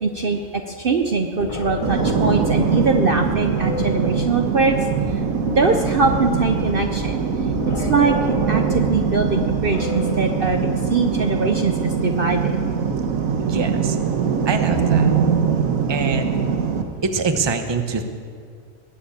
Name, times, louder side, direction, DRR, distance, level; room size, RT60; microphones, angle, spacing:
voice 1, 0.0-4.8 5.5-7.2 7.8-8.2 8.5-12.6, right 4 dB, 45° right, 4 dB, 0.9 m, -22 dB
sound 1, 1.4-10.9, left 4 dB, 35° left, 0.5 m, -32 dB
sound 2, 1.8-16.8, right 6 dB, 85° right, 1.5 m, -22 dB
voice 2, 13.4-14.0 14.4-15.1 15.9-16.3 17.0-18.0, right 4 dB, 20° right, 7 dB, 0.9 m, -24 dB
20.0 x 7.1 x 8.7 m, 2.1 s
omnidirectional pair, 1.4 m